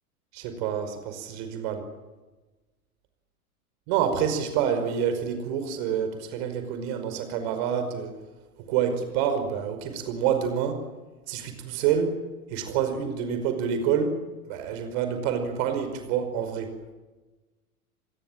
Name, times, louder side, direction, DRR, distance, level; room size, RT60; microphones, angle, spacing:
voice 1, 0.3-1.9 3.9-8.1 8.7-10.8 11.3-12.2 12.5-14.2 14.5-16.7, right 8 dB, 45° right, 8 dB, 5.5 m, -27 dB
26.0 x 21.5 x 9.0 m, 1.2 s
figure-of-eight pair, 95°, 44 cm